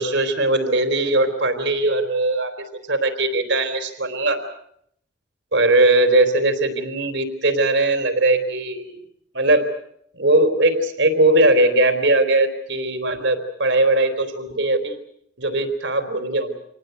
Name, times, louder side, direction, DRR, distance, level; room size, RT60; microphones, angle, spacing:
voice 1, 0.0-2.5 2.9-4.4 5.5-9.0 9.3-9.7 10.1-15.0 15.4-16.5, right 2 dB, 75° right, 8 dB, 3.6 m, -19 dB
26.0 x 19.0 x 7.9 m, 0.71 s
head